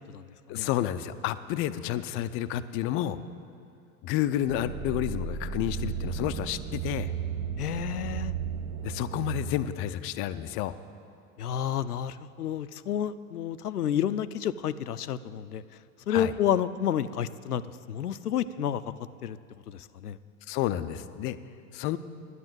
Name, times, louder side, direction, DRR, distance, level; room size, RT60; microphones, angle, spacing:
voice 1, 0.5-3.2 4.0-7.1 8.8-10.7 16.1-16.3 20.5-21.4 21.7-22.0, left 12 dB, 30° left, 13 dB, 0.4 m, -30 dB
sound 1, 4.4-9.5, right 7 dB, 45° right, 1.0 m, -34 dB
voice 2, 7.6-8.3 11.4-15.6 16.1-17.6 17.9-18.8 19.2-19.4 19.7-20.2, left 9 dB, 85° left, 15 dB, 0.6 m, -30 dB
11.0 x 9.6 x 7.6 m, 2.4 s
figure-of-eight pair, 85°, 45 cm